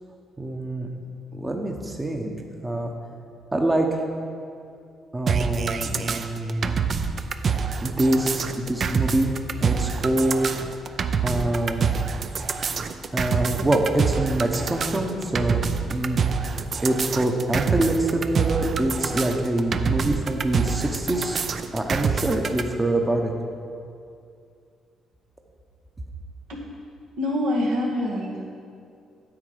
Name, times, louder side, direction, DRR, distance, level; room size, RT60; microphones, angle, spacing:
voice 1, 0.4-0.9 1.3-2.3 2.6-2.9 3.5-4.0 5.1-6.8 7.8-9.3 9.6-10.5 11.2-11.9 13.1-15.6 15.9-16.2 16.8-21.4 21.7-23.3, right 1 dB, 20° right, 2 dB, 0.9 m, -25 dB
sound 1, 5.3-22.6, right 6 dB, 50° right, 0.5 m, -26 dB
voice 2, 27.2-28.5, left 1 dB, 85° right, -3 dB, 2.0 m, -25 dB
9.6 x 7.9 x 4.9 m, 2.4 s
cardioid pair, 90°, 0 cm